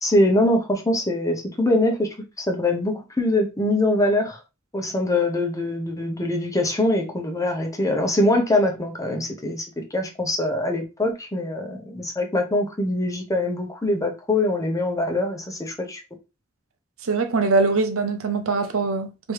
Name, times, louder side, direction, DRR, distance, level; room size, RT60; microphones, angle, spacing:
voice 1, 0.0-4.4 4.7-16.0, left 1 dB, 15° left, 0.9 m, -23 dB
voice 2, 17.0-19.3, right 3 dB, 85° right, 0.7 m, -22 dB
3.3 x 3.0 x 4.7 m
head